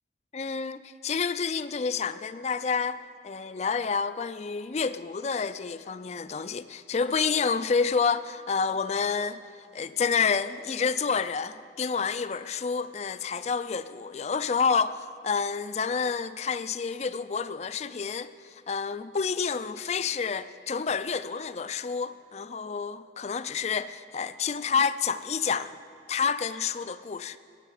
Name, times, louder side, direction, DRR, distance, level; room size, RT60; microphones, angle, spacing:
voice 1, 0.3-9.4 9.7-25.8 26.1-27.4, left 5 dB, 35° left, 0.4 m, -29 dB
18.5 x 6.6 x 9.3 m
head